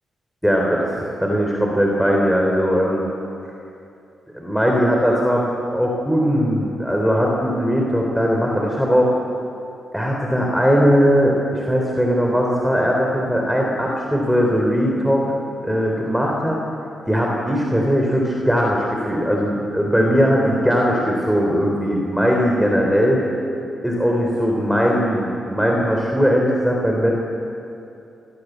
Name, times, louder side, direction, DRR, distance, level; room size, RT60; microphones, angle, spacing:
voice 1, 0.4-3.0 4.3-5.4 5.7-9.1 9.9-15.2 15.6-16.6 17.1-23.2 23.8-27.1, equal, ahead, -1 dB, 3.9 m, -19 dB
24.0 x 17.5 x 8.2 m, 2.7 s
cardioid pair, 85°, 0 cm